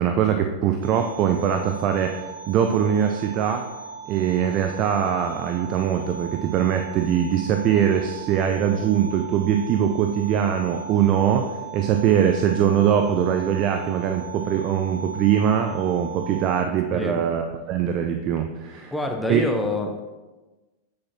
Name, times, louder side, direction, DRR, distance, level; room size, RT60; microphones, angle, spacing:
voice 1, 0.0-3.6 4.1-11.5 11.7-18.9 19.3-19.4, right 9 dB, 35° right, 6 dB, 0.5 m, -22 dB
sound 1, 0.8-16.6, right 5 dB, 80° right, 1.2 m, -38 dB
voice 2, 18.9-20.0, left 2 dB, 5° left, 3 dB, 0.7 m, -26 dB
7.7 x 6.8 x 2.9 m, 1.2 s
figure-of-eight pair, 90°, 0 cm